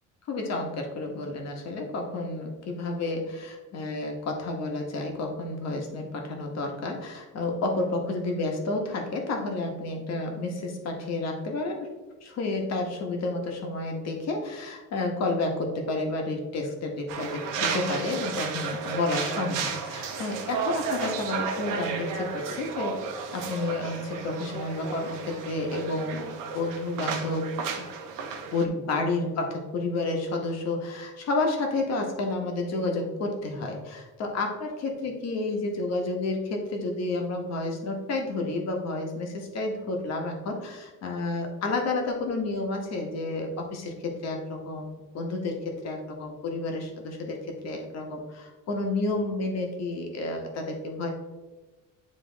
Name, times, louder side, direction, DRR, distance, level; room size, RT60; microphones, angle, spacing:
voice 1, 0.3-11.9 12.2-22.9 23.3-27.5 27.8-27.9 28.5-51.1, left 2 dB, 55° left, 2 dB, 1.4 m, -30 dB
sound 1, 17.1-28.6, right 5 dB, 80° right, 1.0 m, -33 dB
9.6 x 3.4 x 3.5 m, 1.2 s
cardioid pair, 150°, 32 cm